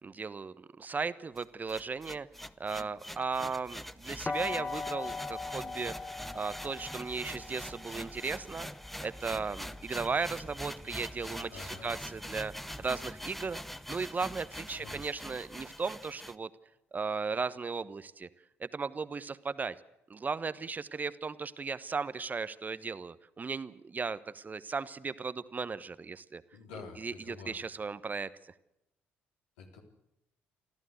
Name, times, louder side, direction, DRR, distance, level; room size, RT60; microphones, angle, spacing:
voice 1, 0.0-2.3 2.6-5.9 6.3-8.7 9.0-13.6 13.9-16.5 16.9-18.3 18.6-19.8 20.1-26.4 27.0-28.3, right 4 dB, 25° right, 15 dB, 1.1 m, -36 dB
sound 1, 1.4-16.4, equal, 5° left, 0.9 m, -44 dB
sound 2, 4.3-10.1, left 4 dB, 20° left, 1.5 m, -41 dB
voice 2, 11.5-12.0 14.8-15.0 26.5-27.6 29.6-29.8, left 4 dB, 70° left, 2 dB, 3.6 m, -48 dB
25.0 x 15.0 x 8.1 m, 0.83 s
figure-of-eight pair, 50°, 6 cm